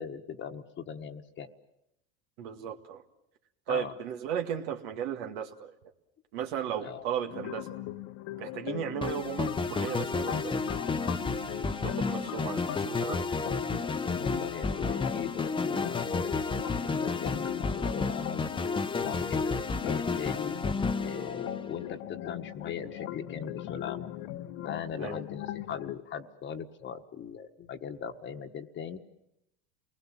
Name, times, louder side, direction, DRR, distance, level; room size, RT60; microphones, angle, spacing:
voice 1, 0.0-1.5 3.7-3.9 6.8-7.0 14.2-16.3 16.8-18.4 19.0-20.6 21.0-24.0 24.6-29.0, left 7 dB, 40° left, 5 dB, 1.5 m, -39 dB
voice 2, 2.4-3.0 3.7-5.7 6.3-7.7 8.4-10.7 11.3-13.3 13.7-13.8 25.0-25.2, right 9 dB, 75° right, 4 dB, 2.0 m, -36 dB
sound 1, 7.3-26.0, left 13 dB, 65° left, 1.3 m, -40 dB
sound 2, 9.0-21.9, left 4 dB, 15° left, 1.0 m, -31 dB
28.5 x 20.0 x 7.4 m, 0.85 s
supercardioid pair, 105°, 30 cm